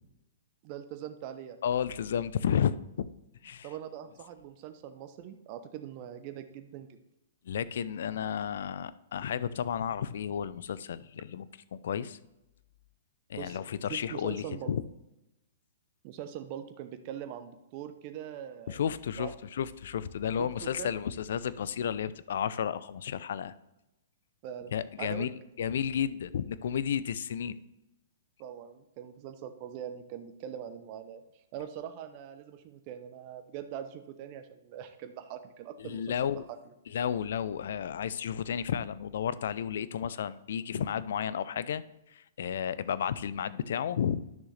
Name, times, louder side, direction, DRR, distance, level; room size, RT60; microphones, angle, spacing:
voice 1, 0.6-1.6 3.6-7.0 13.4-13.6 13.9-14.7 16.0-18.8 19.2-19.3 20.4-20.9 24.4-25.3 28.4-36.2, right 10 dB, 40° right, 8 dB, 0.7 m, -42 dB
voice 2, 1.6-3.1 3.4-3.7 7.5-12.2 13.3-14.8 18.7-23.5 24.7-25.3 25.6-27.6 35.8-36.4 36.9-41.8 42.1-44.2, left 8 dB, 65° left, 16 dB, 0.4 m, -32 dB
10.5 x 6.2 x 3.3 m, 0.91 s
hypercardioid pair, 120°, 0 cm